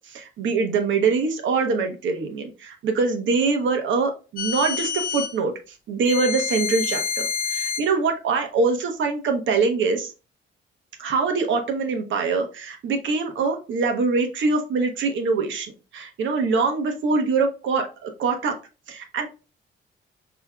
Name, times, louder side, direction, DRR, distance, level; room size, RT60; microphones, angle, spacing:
voice 1, 0.1-5.5 5.9-10.1 11.0-18.5 18.9-19.3, right 4 dB, 70° right, 5 dB, 1.0 m, -24 dB
sound 1, 4.4-5.4 6.1-7.9, left 7 dB, 45° left, 0.5 m, -27 dB
5.5 x 2.9 x 2.3 m, 0.31 s
cardioid pair, 90°, 20 cm